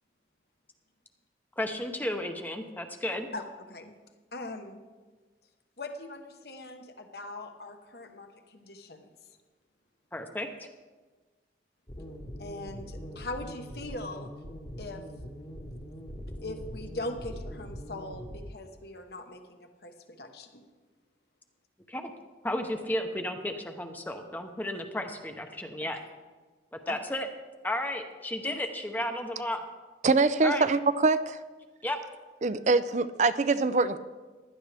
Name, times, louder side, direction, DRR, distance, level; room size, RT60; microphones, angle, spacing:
voice 1, 1.6-3.3 10.1-10.7 21.9-22.1 22.4-26.0 26.7-27.3 27.6-29.6 30.4-30.6 31.8-32.0, left 1 dB, 10° left, 5 dB, 0.8 m, -33 dB
voice 2, 3.3-3.9 4.3-4.8 5.8-9.1 12.4-14.3 14.8-15.0 16.4-20.5 26.9-27.0 28.4-28.6, left 2 dB, 60° left, 6 dB, 1.2 m, -40 dB
sound 1, 11.9-18.5, equal, 25° left, 1.2 m, -42 dB
voice 3, 30.0-31.4 32.4-34.0, right 3 dB, 40° right, 14 dB, 0.4 m, -24 dB
15.5 x 11.5 x 3.4 m, 1.3 s
head